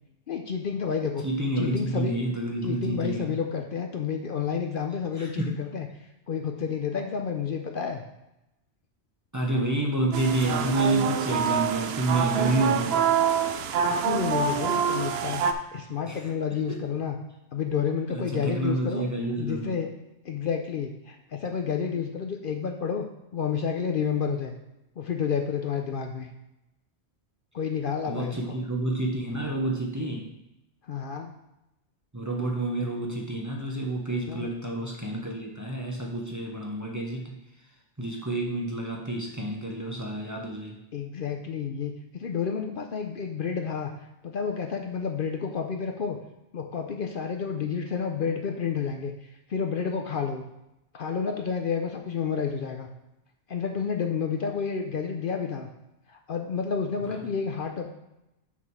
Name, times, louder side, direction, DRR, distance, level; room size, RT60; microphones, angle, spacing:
voice 1, 0.3-1.2 1.6-2.2 2.6-5.9 6.3-8.0 13.9-15.4 15.7-17.2 17.5-19.1 19.4-19.9 20.2-23.1 23.3-24.5 25.0-26.3 27.5-28.6 30.9-31.3 34.3-34.5 40.9-43.9 44.2-46.2 46.5-49.1 49.5-50.4 50.9-52.9 53.5-55.7 56.1-57.9, left 6 dB, 55° left, 3 dB, 0.8 m, -30 dB
voice 2, 1.2-3.3 5.2-5.6 9.3-13.1 16.1-16.2 16.7-16.8 18.1-19.7 28.1-30.3 32.1-37.3 38.0-40.8, right 2 dB, 15° right, -1 dB, 1.0 m, -29 dB
sound 1, 10.1-15.5, right 7 dB, 70° right, 0.8 m, -26 dB
6.2 x 5.9 x 4.7 m, 0.90 s
omnidirectional pair, 1.1 m